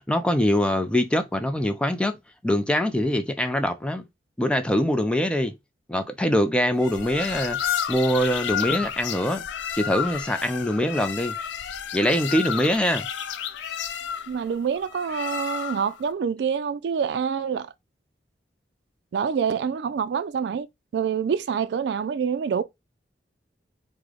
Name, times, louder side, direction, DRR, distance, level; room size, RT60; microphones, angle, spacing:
voice 1, 0.0-2.2 2.4-4.0 4.4-5.5 5.9-9.4 9.7-11.4 11.9-13.1, equal, 5° left, 0.4 m, -23 dB
sound 1, 6.8-16.0, left 8 dB, 85° left, 0.4 m, -31 dB
voice 2, 14.3-17.7 19.1-20.7 20.9-22.6, right 7 dB, 65° right, 0.3 m, -26 dB
3.6 x 2.1 x 3.1 m
head